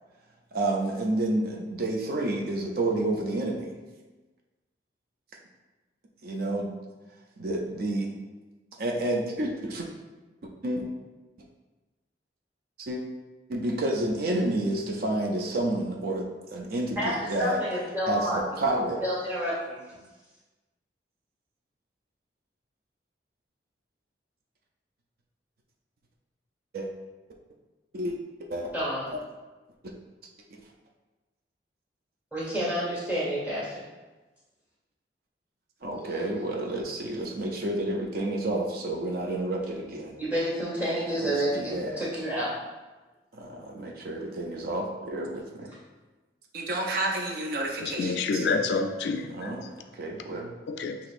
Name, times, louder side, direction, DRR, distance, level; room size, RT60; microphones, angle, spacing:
voice 1, 0.5-3.7 6.2-6.7 7.4-8.1 8.8-9.9 10.6-10.8 12.8-13.0 13.5-17.6 18.1-19.0 26.7-26.9 27.9-28.2 28.5-28.7 29.1-29.2 35.8-40.2 41.2-42.0 43.3-45.7 46.5-48.5 49.2-49.7 49.9-50.5, right 1 dB, 55° right, 1 dB, 0.5 m, -30 dB
voice 2, 17.0-18.4 19.0-20.0 28.7-29.1 32.3-33.8 40.2-42.5, equal, 10° right, -8 dB, 1.4 m, -29 dB
voice 3, 47.8-49.5 50.7-51.0, left 4 dB, 70° left, 6 dB, 0.3 m, -28 dB
6.0 x 2.9 x 2.5 m, 1.2 s
head